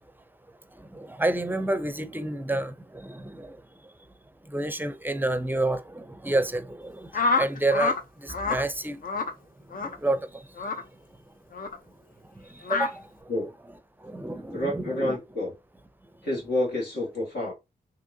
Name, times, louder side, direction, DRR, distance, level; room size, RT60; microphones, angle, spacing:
voice 1, 0.7-3.9 4.4-9.3 9.6-11.3 12.2-13.3 14.0-15.2, right 2 dB, 10° right, 0.5 m, -30 dB
sound 1, 7.1-8.0 8.3-8.6 9.0-9.3 9.7-10.0 10.6-10.8 11.5-11.8 12.6-12.9, left 4 dB, 60° left, 0.6 m, -26 dB
voice 2, 14.5-15.5 16.2-17.5, left 1 dB, 75° left, 1.8 m, -29 dB
3.6 x 2.9 x 2.7 m
supercardioid pair, 45°, 17 cm